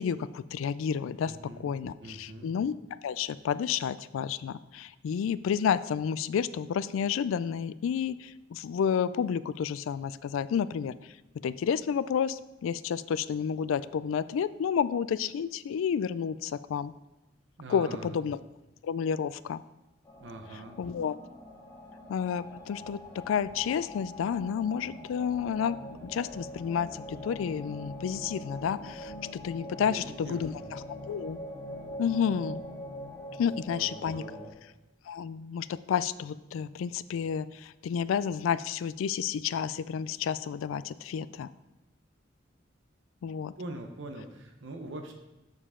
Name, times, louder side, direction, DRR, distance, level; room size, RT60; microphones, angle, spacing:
voice 1, 0.0-1.3 1.6-2.7 3.0-11.2 11.4-16.9 17.7-18.4 18.8-19.6 20.8-21.2 22.1-31.4 32.0-32.6 33.4-34.2 35.1-41.5 43.2-43.5, left 7 dB, 75° left, 16 dB, 0.3 m, -30 dB
voice 2, 1.3-1.7 2.0-2.5 17.6-18.1 20.2-20.8 29.9-30.6 33.4-34.5 43.6-45.1, right 2 dB, 65° right, 4 dB, 0.7 m, -43 dB
sound 1, 20.0-34.5, left 1 dB, 20° left, 1.5 m, -43 dB
7.2 x 6.5 x 3.7 m, 1.0 s
head